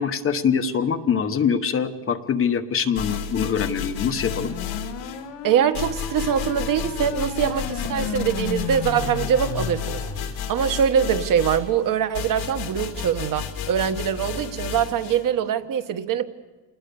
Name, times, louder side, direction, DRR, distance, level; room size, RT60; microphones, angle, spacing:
voice 1, 0.0-4.5, left 7 dB, 30° left, 7 dB, 1.2 m, -23 dB
sound 1, 3.0-5.3 5.7-15.2, left 7 dB, 60° left, 3.1 m, -32 dB
sound 2, 4.2-10.2, left 8 dB, 85° left, 2.8 m, -34 dB
voice 2, 5.4-16.3, right 8 dB, 50° right, 9 dB, 1.3 m, -23 dB
27.5 x 20.0 x 7.0 m, 1.3 s
cardioid pair, 170°, 43 cm